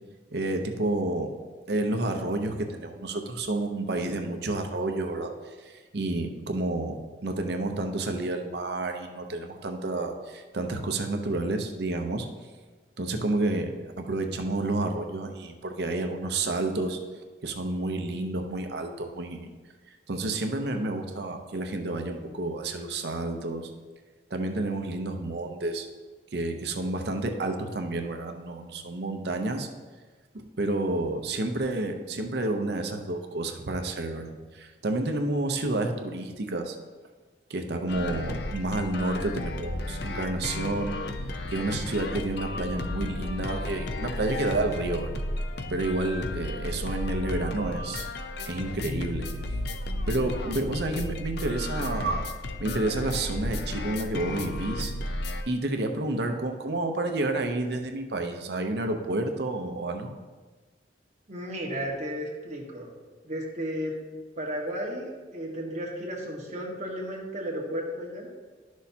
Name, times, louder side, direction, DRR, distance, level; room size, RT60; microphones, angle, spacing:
voice 1, 0.3-1.3 1.7-6.9 7.2-12.3 13.0-17.0 17.4-19.5 20.1-23.7 24.3-25.9 26.3-29.7 30.3-36.8 37.5-41.0 41.5-45.1 45.7-48.1 48.5-49.3 50.1-52.3 52.6-54.9 55.5-60.2, right 2 dB, 65° right, 5 dB, 0.7 m, -30 dB
sound 1, 37.9-55.4, left 1 dB, 65° left, 0.6 m, -33 dB
voice 2, 61.3-62.9 63.2-63.9 64.3-68.3, equal, 40° right, -1 dB, 1.4 m, -34 dB
11.5 x 6.3 x 2.8 m, 1.4 s
head